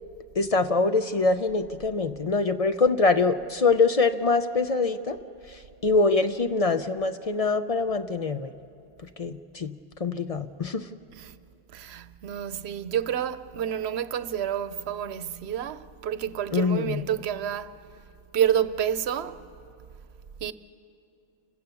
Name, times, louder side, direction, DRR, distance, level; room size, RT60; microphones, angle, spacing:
voice 1, 0.4-5.2 5.5-8.5 9.2-10.9 16.5-17.0, left 3 dB, 45° left, 0.6 m, -24 dB
voice 2, 11.7-17.8 18.3-19.4 20.4-20.5, right 9 dB, 90° right, 0.9 m, -29 dB
29.0 x 16.0 x 7.0 m
omnidirectional pair, 1.0 m